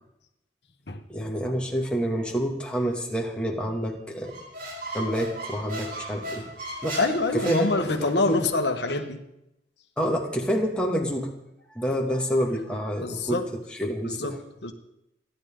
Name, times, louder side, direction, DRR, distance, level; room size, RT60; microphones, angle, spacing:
voice 1, 1.1-4.4 4.9-6.5 6.8-7.0 7.3-8.4 10.0-11.3 11.7-13.4 13.8-14.4, equal, 5° left, -1 dB, 2.4 m, -28 dB
Squeak, 4.2-8.3, right 1 dB, 55° right, 4.5 m, -37 dB
voice 2, 7.0-9.2 13.0-13.5 14.0-14.7, left 3 dB, 75° left, 6 dB, 1.5 m, -26 dB
29.5 x 11.0 x 3.9 m, 0.83 s
head